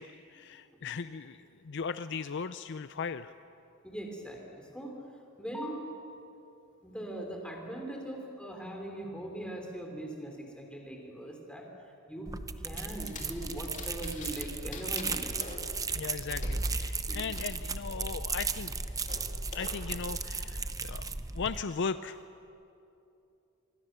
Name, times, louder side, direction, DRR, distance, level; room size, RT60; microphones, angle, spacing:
voice 1, 0.0-3.3 15.9-18.8 19.5-21.1 21.3-22.2, left 5 dB, 55° left, 12 dB, 0.5 m, -37 dB
voice 2, 3.8-5.0 5.4-5.8 6.8-11.6 12.1-12.4 12.6-15.5 17.1-17.2, right 1 dB, 5° left, 1 dB, 3.6 m, -40 dB
sound 1, 12.3-21.6, right 4 dB, 15° right, 0.6 m, -35 dB
sound 2, 12.8-14.5 14.7-17.4 17.9-19.7, left 4 dB, 35° left, 2.7 m, -47 dB
26.0 x 24.5 x 6.9 m, 2.8 s
head